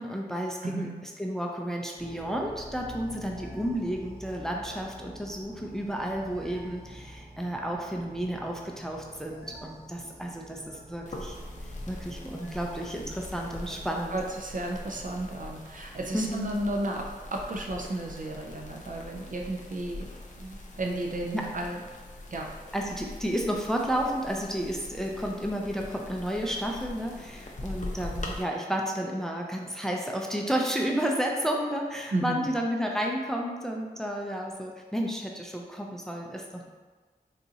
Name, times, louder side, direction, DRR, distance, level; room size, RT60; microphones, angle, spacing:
voice 1, 0.0-11.4 11.9-14.2 16.1-16.5 21.3-21.5 22.7-36.7, equal, 5° left, 0 dB, 0.4 m, -32 dB
voice 2, 0.6-1.0 14.1-20.1 20.4-21.8 22.3-22.5 32.1-32.5, right 1 dB, 55° right, 0 dB, 0.5 m, -33 dB
sound 1, 2.0-14.0, right 1 dB, 20° right, 0.8 m, -47 dB
sound 2, 11.1-28.4, left 1 dB, 50° left, 0.6 m, -42 dB
4.0 x 2.4 x 2.7 m, 1.4 s
wide cardioid pair, 45°, 16 cm